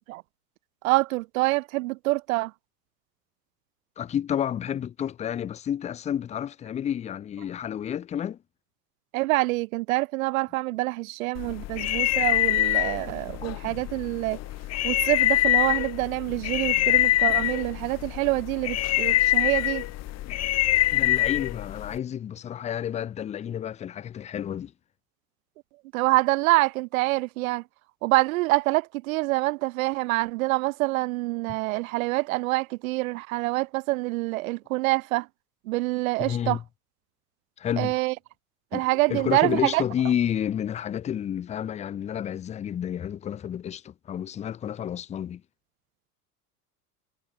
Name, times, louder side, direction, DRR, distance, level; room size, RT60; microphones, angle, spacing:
voice 1, 0.8-2.5 9.1-14.4 14.8-19.8 25.9-27.6 28.0-35.3 35.7-36.6 37.8-38.1 38.7-39.8, right 21 dB, 60° right, 0.7 m, -26 dB
voice 2, 4.0-8.4 20.9-24.7 36.2-36.6 37.6-38.0 38.7-45.4, left 9 dB, 15° left, 0.5 m, -30 dB
sound 1, 11.4-22.0, left 15 dB, 35° left, 1.0 m, -25 dB
figure-of-eight pair, 80°, 47 cm